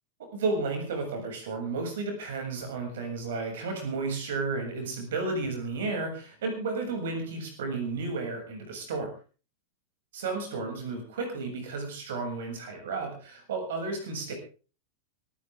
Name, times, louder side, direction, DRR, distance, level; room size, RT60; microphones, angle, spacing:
voice 1, 0.3-9.1 10.1-14.3, right 3 dB, 60° right, 5 dB, 7.2 m, -32 dB
24.5 x 15.0 x 3.7 m, 0.37 s
figure-of-eight pair, 90°, 0 cm